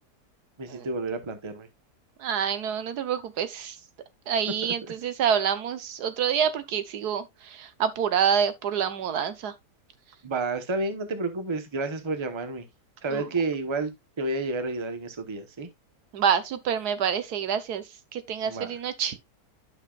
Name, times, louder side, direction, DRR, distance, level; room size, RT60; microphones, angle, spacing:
voice 1, 0.6-1.7 4.6-4.7 10.2-12.6 13.0-15.7 18.4-18.7, right 3 dB, 20° right, 0.9 m, -30 dB
voice 2, 2.2-3.8 4.3-9.5 13.1-13.3 16.1-17.8 18.1-19.2, right 8 dB, 80° right, 1.4 m, -27 dB
11.0 x 5.8 x 2.4 m
omnidirectional pair, 1.7 m